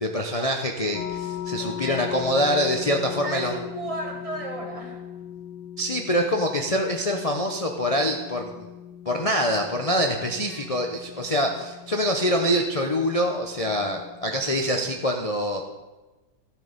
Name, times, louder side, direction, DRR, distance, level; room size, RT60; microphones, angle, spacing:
voice 1, 0.0-3.5 5.8-8.7 9.1-15.6, equal, 40° left, 2 dB, 0.5 m, -25 dB
sound 1, 0.9-15.0, left 10 dB, 75° left, 1.6 m, -39 dB
voice 2, 1.6-2.3 3.0-5.0 10.2-10.8, right 2 dB, 20° right, 1 dB, 1.3 m, -36 dB
13.0 x 7.7 x 5.1 m, 1.2 s
omnidirectional pair, 1.9 m